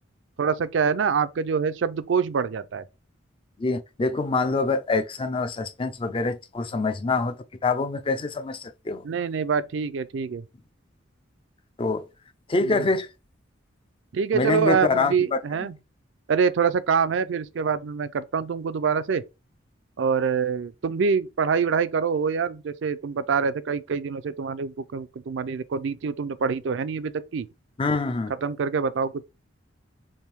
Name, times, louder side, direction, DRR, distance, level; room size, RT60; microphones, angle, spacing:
voice 1, 0.4-2.8 9.0-10.4 12.6-12.9 14.1-15.7 16.3-19.2 20.0-27.5 28.4-29.2, right 6 dB, 65° right, 0.4 m, -25 dB
voice 2, 3.6-7.4 7.6-9.0 11.8-12.1 12.5-13.1 14.3-15.4 27.8-28.3, left 3 dB, 25° left, 0.4 m, -25 dB
3.5 x 2.6 x 4.4 m
head